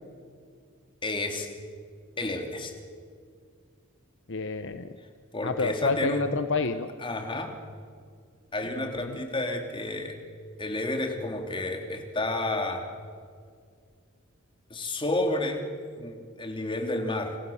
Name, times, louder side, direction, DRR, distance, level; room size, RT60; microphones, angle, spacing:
voice 1, 1.0-1.5 2.2-2.7 5.3-6.2 7.0-7.5 8.5-10.2 10.6-12.8 14.7-15.6 16.0-17.4, left 2 dB, 25° left, 4 dB, 3.1 m, -30 dB
voice 2, 4.3-4.9 5.4-6.9 8.7-9.2, left 3 dB, 60° left, 10 dB, 1.0 m, -29 dB
29.0 x 27.5 x 7.3 m, 2.2 s
head